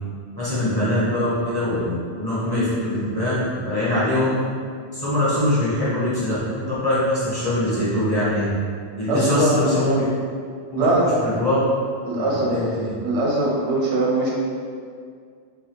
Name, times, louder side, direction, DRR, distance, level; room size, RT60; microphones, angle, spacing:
voice 1, 0.3-4.3 4.9-8.5 9.0-10.0 10.7-10.9 11.2-11.6 12.1-12.9, left 1 dB, 25° left, -11 dB, 0.7 m, -23 dB
voice 2, 3.8-4.3 9.1-9.8 10.7-11.1 12.1-12.6 13.0-14.3, right 2 dB, 85° right, -4 dB, 1.1 m, -22 dB
3.2 x 2.3 x 2.8 m, 2.2 s
omnidirectional pair, 1.2 m